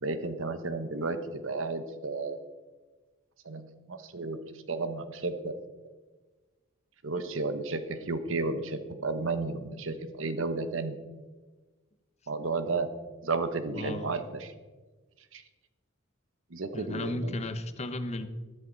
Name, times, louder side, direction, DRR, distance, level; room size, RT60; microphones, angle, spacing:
voice 1, 0.0-2.4 3.4-4.4 4.7-5.5 7.0-11.0 12.3-12.9 13.2-14.5 15.3-15.4 16.5-17.3, right 3 dB, 70° right, 10 dB, 1.1 m, -32 dB
voice 2, 13.7-14.1 16.7-18.3, left 1 dB, 35° left, 9 dB, 0.8 m, -34 dB
13.5 x 12.5 x 4.0 m, 1.3 s
head